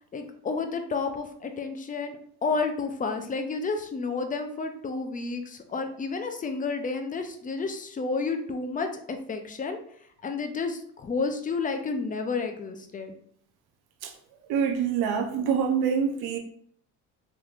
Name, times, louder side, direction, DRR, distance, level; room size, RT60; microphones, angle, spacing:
voice 1, 0.1-9.8 10.2-13.1, left 4 dB, 20° left, 0.5 m, -31 dB
voice 2, 14.5-16.4, right 7 dB, 70° right, 0.7 m, -25 dB
3.5 x 2.9 x 2.4 m
supercardioid pair, 95°, 39 cm